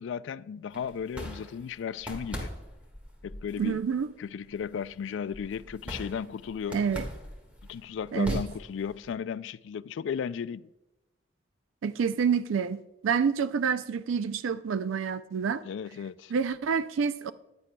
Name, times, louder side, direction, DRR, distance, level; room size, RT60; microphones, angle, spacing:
voice 1, 0.0-2.5 3.2-3.8 4.2-6.8 7.7-10.7 15.6-16.3, left 7 dB, 75° left, 0.3 m, -35 dB
sound 1, 0.7-9.1, equal, 5° right, 1.7 m, -41 dB
voice 2, 3.6-4.1 6.7-7.0 8.1-8.4 11.8-15.6 16.3-17.3, right 6 dB, 85° right, 0.4 m, -28 dB
15.0 x 9.8 x 2.2 m
head